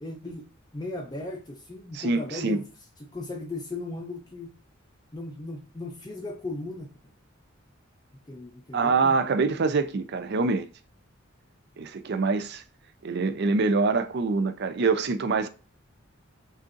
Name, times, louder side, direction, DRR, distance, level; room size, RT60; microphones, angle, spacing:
voice 1, 0.0-0.5 0.7-2.7 3.0-4.5 5.1-6.9 8.3-9.1, left 2 dB, 20° left, 0.5 m, -37 dB
voice 2, 1.9-2.6 8.7-10.7 11.8-12.6 13.0-15.5, right 4 dB, 55° right, 0.5 m, -25 dB
6.3 x 2.5 x 2.5 m
head